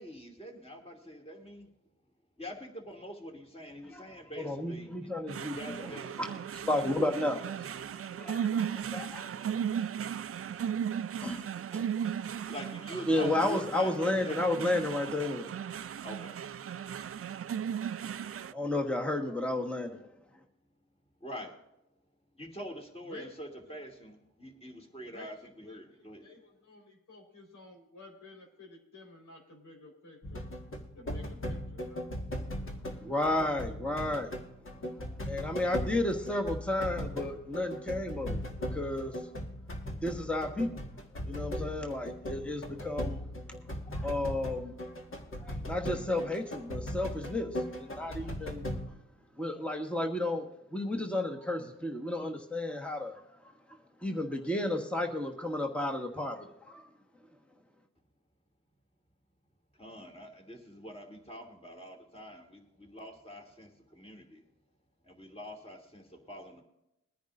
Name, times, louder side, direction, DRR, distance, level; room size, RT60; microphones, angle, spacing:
voice 1, 0.0-1.7 2.4-6.2 12.5-14.5 16.0-16.4 21.2-21.6 22.3-26.3 59.8-64.4 65.0-66.6, equal, 20° left, 1 dB, 2.7 m, -45 dB
voice 2, 3.8-9.4 11.2-11.4 11.7-11.9 13.1-15.5 18.4-20.1 20.3-20.4 33.0-34.3 35.0-39.3 40.0-40.7 41.2-43.2 43.9-44.8 45.4-48.6 49.4-56.9, left 1 dB, 5° left, 2 dB, 1.4 m, -33 dB
sound 1, 5.3-18.5, right 8 dB, 50° right, 0.4 m, -36 dB
voice 3, 25.7-30.4 30.7-32.0, left 2 dB, 80° left, 0 dB, 4.6 m, -52 dB
sound 2, 30.2-48.9, equal, 45° left, 1.8 m, -38 dB
22.0 x 10.0 x 2.6 m, 0.86 s
wide cardioid pair, 100°, 30 cm